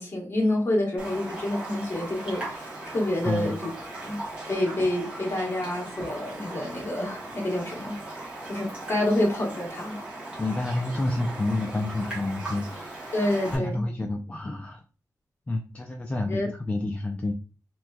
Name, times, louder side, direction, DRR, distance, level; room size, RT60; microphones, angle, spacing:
voice 1, 0.0-3.7 4.0-4.2 4.5-10.0 13.1-13.8 16.2-16.5, left 1 dB, 40° left, -1 dB, 1.2 m, -28 dB
Raindrop, 1.0-13.6, right 2 dB, 15° right, 1.1 m, -38 dB
voice 2, 10.4-13.2 13.5-14.8 15.5-17.3, left 2 dB, 20° left, 2 dB, 0.3 m, -29 dB
3.2 x 3.0 x 2.2 m, 0.35 s
wide cardioid pair, 120°, 6 cm